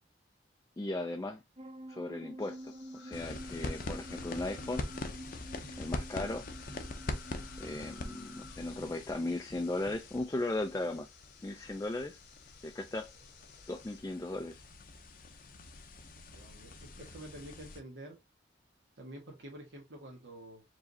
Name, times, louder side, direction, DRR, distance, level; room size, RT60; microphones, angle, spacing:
voice 1, 0.8-1.4 1.9-4.9 5.8-6.5 7.6-11.1 11.4-12.2 12.6-13.1 13.7-14.6, left 2 dB, 15° left, 0.4 m, -37 dB
sound 1, 1.6-9.0, equal, 30° right, 0.6 m, -49 dB
sound 2, 2.4-14.0, left 6 dB, 80° left, 1.4 m, -58 dB
sound 3, 3.1-17.8, left 2 dB, 50° left, 0.7 m, -44 dB
voice 2, 16.3-18.2 18.9-20.6, right 1 dB, 75° right, 1.4 m, -48 dB
4.7 x 3.2 x 2.7 m
head